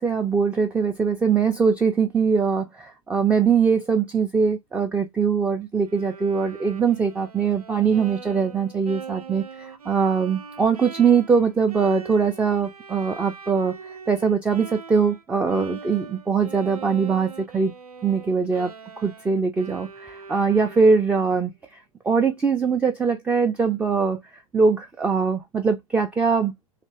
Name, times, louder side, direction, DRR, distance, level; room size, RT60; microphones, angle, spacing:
voice 1, 0.0-13.7 14.1-17.7 18.0-24.2 24.5-26.5, right 5 dB, 5° right, 0.4 m, -22 dB
Bowed string instrument, 5.9-15.2 15.5-21.3, right 5 dB, 80° right, 0.6 m, -41 dB
3.3 x 2.9 x 2.8 m
figure-of-eight pair, 105°, 19 cm